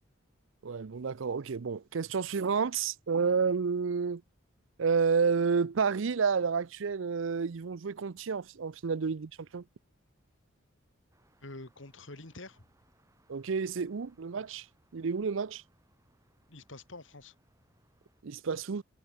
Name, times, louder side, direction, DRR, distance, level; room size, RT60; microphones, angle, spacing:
voice 1, 0.6-4.2 4.8-9.6 13.3-14.7 14.9-15.6 18.2-18.8, right 5 dB, 70° right, 0.5 m, -30 dB
sound 1, 11.1-18.2, right 1 dB, 15° right, 5.3 m, -70 dB
voice 2, 11.4-12.6 16.5-17.3, left 2 dB, 65° left, 2.7 m, -47 dB
head